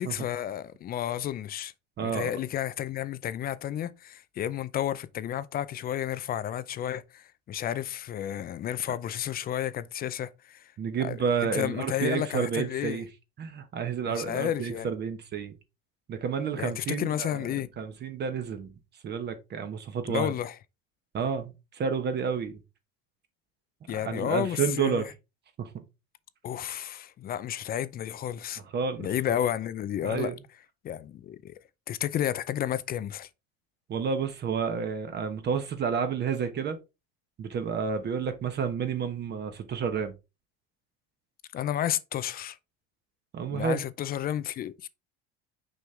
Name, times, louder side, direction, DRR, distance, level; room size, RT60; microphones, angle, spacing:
voice 1, 0.0-1.7 2.0-10.6 11.0-11.2 11.4-13.0 14.1-14.9 16.6-17.7 20.1-20.5 23.9-25.0 26.4-28.6 29.0-30.3 30.8-31.5 31.9-33.3 41.5-42.6 43.5-44.9, left 11 dB, 30° left, 0.4 m, -31 dB
voice 2, 2.0-2.3 10.8-13.1 13.4-15.5 16.1-17.5 17.8-18.7 19.0-20.3 21.1-22.6 24.0-25.1 25.6-25.8 28.6-29.1 30.0-30.4 33.9-36.8 37.4-40.1 43.3-43.8, right 6 dB, 35° right, 1.0 m, -30 dB
6.2 x 5.3 x 3.3 m
supercardioid pair, 130°, 31 cm